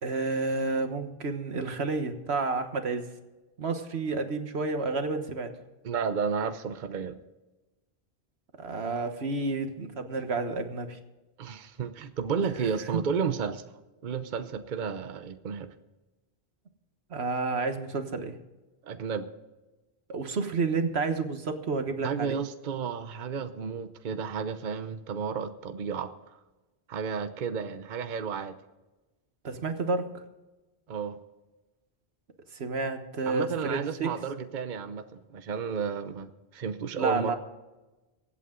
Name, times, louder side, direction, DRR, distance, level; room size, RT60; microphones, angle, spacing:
voice 1, 0.0-3.1 3.6-5.5 8.6-11.0 12.6-13.0 17.1-18.4 20.1-22.4 29.4-30.2 32.5-34.1 36.9-37.4, right 3 dB, 85° right, 7 dB, 1.6 m, -30 dB
voice 2, 5.8-7.2 11.4-13.6 14.0-15.7 18.8-19.3 22.0-26.1 26.9-28.6 30.9-31.2 33.3-37.3, right 6 dB, 50° right, 10 dB, 0.9 m, -32 dB
24.0 x 8.5 x 3.8 m, 1.1 s
omnidirectional pair, 1.0 m